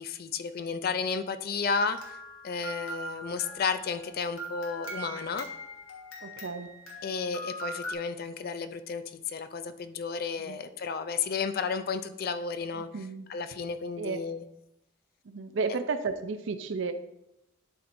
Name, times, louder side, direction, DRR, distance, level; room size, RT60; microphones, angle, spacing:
voice 1, 0.0-2.0 2.4-5.5 7.0-12.9 13.3-14.4, left 5 dB, 45° left, 11 dB, 0.4 m, -32 dB
sound 1, 1.7-7.9, right 1 dB, 70° left, 1.5 m, -41 dB
voice 2, 6.2-6.7 10.4-10.6 12.8-13.3 14.0-14.2 15.3-16.9, right 4 dB, 60° right, 9 dB, 0.5 m, -33 dB
11.0 x 4.3 x 2.6 m, 0.85 s
head